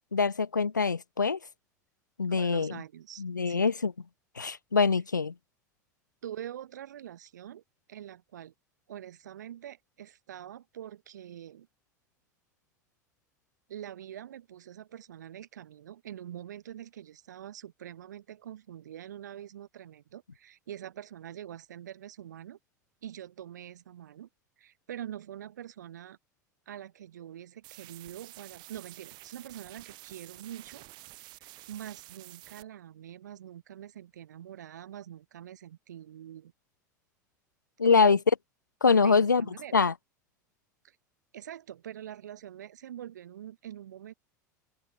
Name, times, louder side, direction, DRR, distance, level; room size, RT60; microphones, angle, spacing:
voice 1, 0.1-1.4 2.2-2.8 3.2-3.9 4.4-5.3 37.8-38.2 38.8-39.4 39.7-39.9, left 5 dB, 90° left, 0.6 m, -24 dB
voice 2, 2.3-3.7 6.2-7.6 7.9-8.5 8.9-11.7 13.7-22.6 23.0-24.3 24.6-26.2 26.7-30.8 31.4-36.5 37.8-38.2 39.0-39.7 40.8-41.0 41.3-44.1, right 11 dB, 70° right, 6.4 m, -44 dB
sound 1, 27.6-32.6, right 21 dB, 50° right, 3.7 m, -50 dB
open air
figure-of-eight pair, 80°, 10 cm